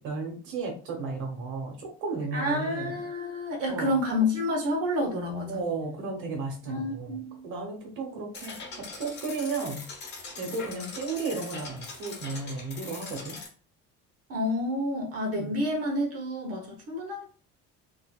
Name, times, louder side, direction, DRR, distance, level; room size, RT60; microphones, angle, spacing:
voice 1, 0.0-3.0 3.7-4.0 5.4-9.9 10.3-13.4 15.3-15.5, right 3 dB, 85° right, 1.2 m, -34 dB
voice 2, 2.3-5.6 6.7-7.5 14.3-17.4, left 1 dB, 55° right, 1.1 m, -29 dB
sound 1, 8.3-13.5, left 3 dB, 35° left, 1.0 m, -41 dB
3.9 x 2.8 x 2.3 m
cardioid pair, 160°, 29 cm